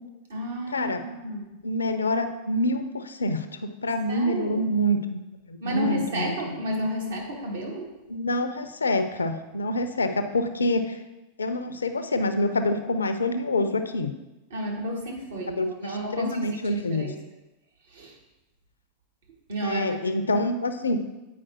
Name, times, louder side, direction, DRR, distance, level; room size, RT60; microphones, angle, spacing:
voice 1, 0.3-1.5 4.1-4.6 5.6-7.9 14.5-17.2 17.9-18.2 19.5-20.2, equal, 65° right, -2 dB, 1.5 m, -32 dB
voice 2, 1.6-5.2 5.5-6.6 8.1-11.0 11.4-14.1 15.6-17.1 19.6-21.0, left 1 dB, 75° left, 9 dB, 0.4 m, -26 dB
8.3 x 4.8 x 2.9 m, 1.0 s
figure-of-eight pair, 90°, 0 cm